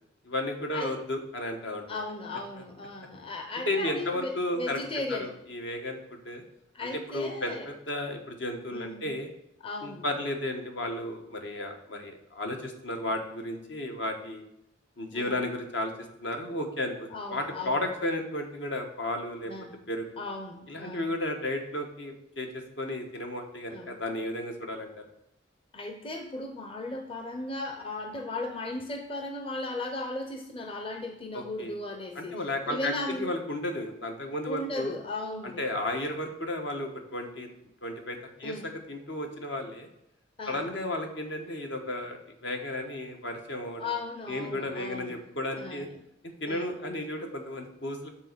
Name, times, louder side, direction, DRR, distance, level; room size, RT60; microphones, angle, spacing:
voice 1, 0.2-1.8 3.7-6.4 6.8-9.3 9.8-14.4 15.0-15.9 16.2-19.5 19.9-20.1 20.7-25.0 31.3-31.8 32.1-34.9 35.6-37.5 37.8-39.9 40.5-43.9 44.3-45.9 46.2-48.1, left 1 dB, 70° left, 3 dB, 1.3 m, -33 dB
voice 2, 1.9-5.3 6.7-7.7 8.7-9.0 9.6-10.0 15.1-15.3 17.1-17.8 19.5-19.7 20.2-21.1 23.7-24.0 25.7-32.4 32.7-33.4 34.5-35.6 38.4-38.7 40.4-40.7 43.8-45.2 45.6-45.8 46.5-46.8, left 2 dB, 30° left, 4 dB, 0.8 m, -36 dB
8.9 x 4.2 x 6.7 m, 0.81 s
head